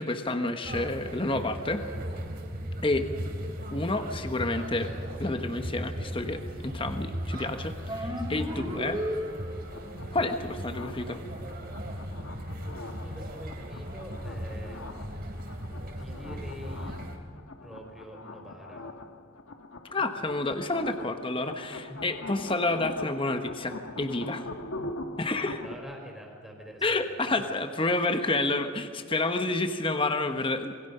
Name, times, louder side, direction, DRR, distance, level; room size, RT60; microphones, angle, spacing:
voice 1, 0.0-1.8 2.8-3.1 3.7-4.9 5.2-9.0 10.1-11.2 19.9-24.5 25.2-25.6 26.8-30.7, left 2 dB, 25° left, 7 dB, 1.1 m, -29 dB
sound 1, 0.6-17.2, equal, 45° right, 2.9 m, -37 dB
sound 2, 7.9-9.9, equal, 20° right, 2.4 m, -34 dB
voice 2, 8.1-8.6 12.9-15.4 16.0-17.0 17.6-18.9 21.9-22.1 25.4-27.5, equal, ahead, 1 dB, 3.9 m, -46 dB
sound 3, 9.7-25.8, left 2 dB, 75° left, 1.4 m, -43 dB
27.0 x 21.5 x 5.6 m, 2.2 s
head